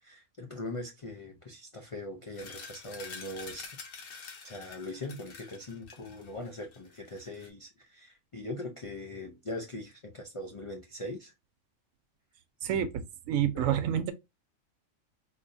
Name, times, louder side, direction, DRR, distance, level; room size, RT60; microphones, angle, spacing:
voice 1, 0.0-3.6 4.1-11.3 13.5-13.8, left 1 dB, 60° left, 0.3 m, -41 dB
sound 1, 2.3-7.5, left 5 dB, 80° left, 1.2 m, -47 dB
voice 2, 12.6-13.0 13.3-14.1, right 9 dB, 85° right, 1.0 m, -28 dB
4.0 x 2.6 x 2.5 m
omnidirectional pair, 1.4 m